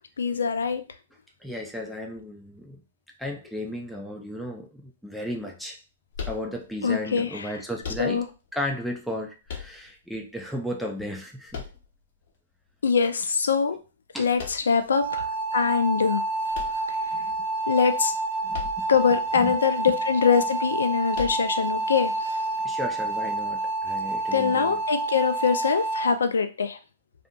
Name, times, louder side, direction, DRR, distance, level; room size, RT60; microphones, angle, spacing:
voice 1, 0.2-0.8 6.8-7.5 8.0-8.2 12.8-13.8 14.2-15.3 15.5-16.2 17.7-18.1 18.9-22.4 24.3-26.8, left 6 dB, 75° left, 9 dB, 0.4 m, -23 dB
voice 2, 1.4-2.8 3.2-5.8 6.3-8.3 8.5-11.6 14.1-14.3 17.1-17.3 18.4-18.8 19.3-19.6 22.6-24.8, equal, ahead, 1 dB, 0.5 m, -34 dB
sound 1, 6.1-6.9 7.8-8.5 9.5-10.2 11.5-12.3 14.4-14.9 16.5-17.4 18.5-19.1 19.3-19.4 21.1-21.8, left 6 dB, 55° left, 0.8 m, -38 dB
sound 2, 14.9-26.1, right 2 dB, 50° right, 0.6 m, -28 dB
2.6 x 2.5 x 2.2 m, 0.33 s
figure-of-eight pair, 115°, 0 cm